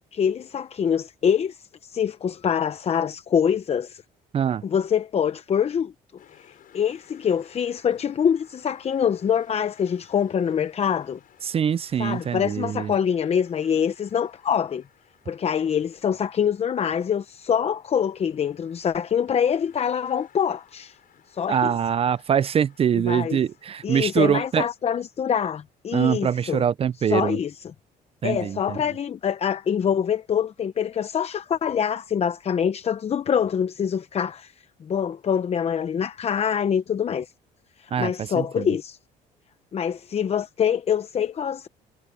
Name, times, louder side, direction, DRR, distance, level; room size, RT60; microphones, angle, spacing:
voice 1, 0.1-4.0 4.6-5.9 6.3-11.2 12.0-14.8 15.3-21.0 21.3-21.7 23.1-23.4 23.8-26.6 27.0-27.5 28.2-37.3 37.8-39.0 39.7-41.7, left 8 dB, 35° left, 0.8 m, -25 dB
sound 1, 6.2-25.7, left 10 dB, 55° left, 7.8 m, -57 dB
voice 2, 11.4-12.9 21.5-24.7 25.9-27.4 28.2-28.8 37.9-38.7, right 8 dB, 35° right, 0.4 m, -24 dB
cardioid pair, 110°, 17 cm